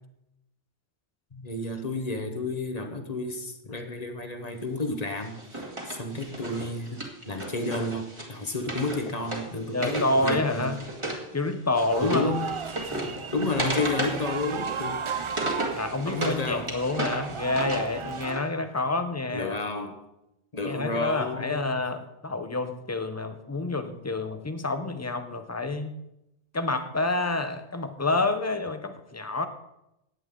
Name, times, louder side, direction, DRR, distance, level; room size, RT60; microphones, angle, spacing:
voice 1, 1.3-5.6 5.9-10.7 12.0-12.5 13.3-15.0 16.1-16.7 19.3-20.0 20.5-21.7, left 2 dB, 35° left, 6 dB, 1.3 m, -31 dB
Wood, 5.2-11.2 11.5-16.4 16.7-18.4, right 1 dB, 25° right, 2.2 m, -34 dB
voice 2, 9.5-10.8 11.3-12.3 15.7-19.6 20.6-26.0 26.5-29.5, left 2 dB, 15° left, 8 dB, 0.8 m, -28 dB
sound 1, 11.9-18.3, right 6 dB, 55° right, 0.3 m, -35 dB
16.0 x 10.5 x 3.8 m, 0.87 s
omnidirectional pair, 1.1 m